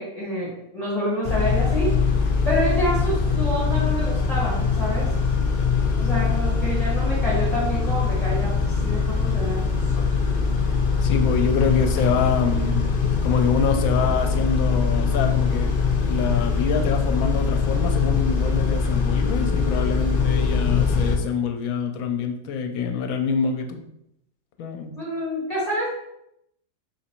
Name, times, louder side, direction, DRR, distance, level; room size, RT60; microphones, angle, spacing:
voice 1, 0.0-2.0 2.4-5.1 6.0-9.6 24.8-25.9, equal, 30° left, -7 dB, 1.2 m, -27 dB
Car / Idling / Accelerating revving vroom, 1.2-21.2, left 5 dB, 50° left, 0.7 m, -22 dB
voice 2, 11.0-13.0 13.2-15.7 16.0-23.8 24.6-24.9, left 5 dB, 75° left, 5 dB, 1.0 m, -25 dB
3.5 x 2.9 x 4.3 m, 0.78 s
omnidirectional pair, 1.5 m